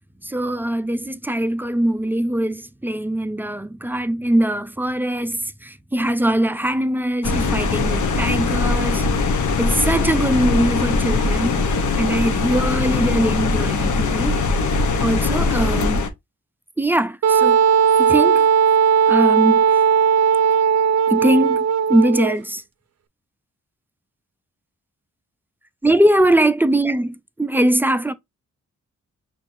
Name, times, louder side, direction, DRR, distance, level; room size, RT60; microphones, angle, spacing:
voice 1, 0.2-9.1 9.6-11.6 12.0-14.4 15.0-16.0 16.8-17.6 18.0-18.5 19.1-19.6 21.1-22.6 25.8-28.1, right 1 dB, 5° right, 0.3 m, -21 dB
sound 1, 7.2-16.1, left 3 dB, 75° left, 0.8 m, -21 dB
Wind instrument woodwind instrument, 17.2-22.4, right 7 dB, 55° right, 0.5 m, -16 dB
5.8 x 2.6 x 2.5 m
cardioid pair, 85°, 30 cm